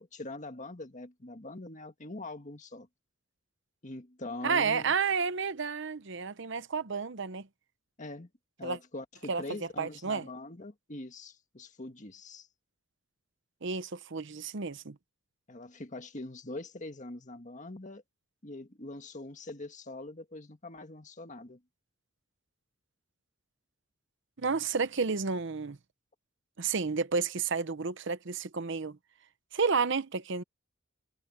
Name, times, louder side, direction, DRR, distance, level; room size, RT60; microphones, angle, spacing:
voice 1, 0.0-2.9 3.8-4.9 8.0-8.3 8.6-12.5 15.5-18.0 18.4-21.6, left 2 dB, 35° left, 1.8 m, -43 dB
voice 2, 4.4-7.5 8.6-8.8 9.3-9.4 9.8-10.2 13.6-15.0 24.4-25.8 26.6-29.0 29.5-30.4, right 5 dB, 60° right, 0.8 m, -31 dB
head